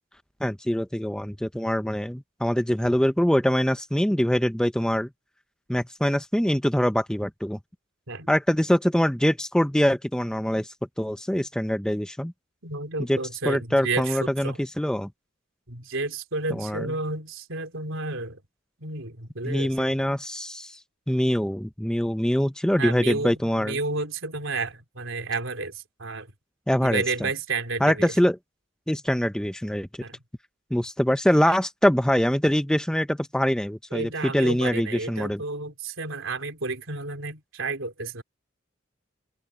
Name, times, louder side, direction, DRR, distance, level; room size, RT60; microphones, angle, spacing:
voice 1, 0.4-5.1 5.7-7.6 8.3-10.7 11.0-12.3 13.1-13.2 13.5-15.1 16.5-16.9 19.4-20.8 21.1-23.8 26.7-27.0 27.8-28.4 28.9-29.9 30.7-35.4, equal, 5° left, 0.6 m, -24 dB
voice 2, 12.6-14.6 15.7-18.4 18.8-20.1 22.8-26.3 26.8-28.1 30.0-30.2 31.5-31.6 33.9-38.2, right 3 dB, 80° right, 3.4 m, -31 dB
open air
head